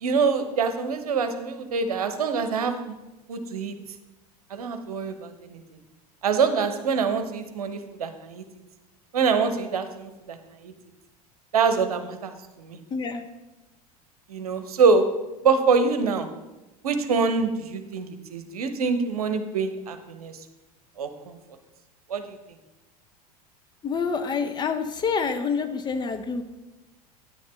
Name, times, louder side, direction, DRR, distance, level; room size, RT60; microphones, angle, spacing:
voice 1, 0.0-2.7 3.3-3.7 4.5-5.6 6.2-8.4 9.1-10.7 11.5-12.3 12.6-12.8 14.3-15.0 15.4-16.3 16.8-20.3 21.0-21.3 22.1-22.4, right 5 dB, 70° right, 9 dB, 0.9 m, -25 dB
voice 2, 12.9-13.3 23.8-26.4, left 5 dB, 20° left, 7 dB, 0.7 m, -27 dB
9.4 x 9.2 x 3.3 m, 1.0 s
figure-of-eight pair, 80°, 20 cm